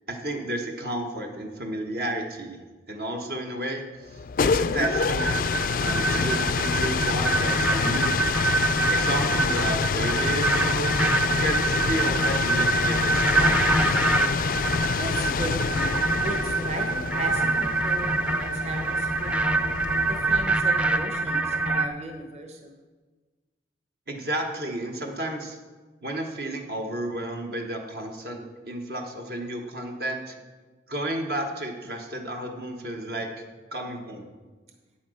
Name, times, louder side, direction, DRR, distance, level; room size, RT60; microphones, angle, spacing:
voice 1, 0.1-2.6 2.9-4.2 4.4-5.4 5.8-8.3 8.9-11.0 11.4-13.8 24.1-25.6 26.0-30.4 30.9-33.3 33.7-34.3, right 1 dB, 60° right, 2 dB, 1.2 m, -32 dB
sound 1, 4.1-20.8, left 5 dB, 50° left, 0.3 m, -27 dB
sound 2, 4.8-21.9, right 2 dB, 5° right, 0.5 m, -25 dB
voice 2, 15.0-19.5 20.0-22.7, right 2 dB, 40° right, 3 dB, 1.1 m, -36 dB
8.6 x 8.5 x 6.3 m, 1.3 s
head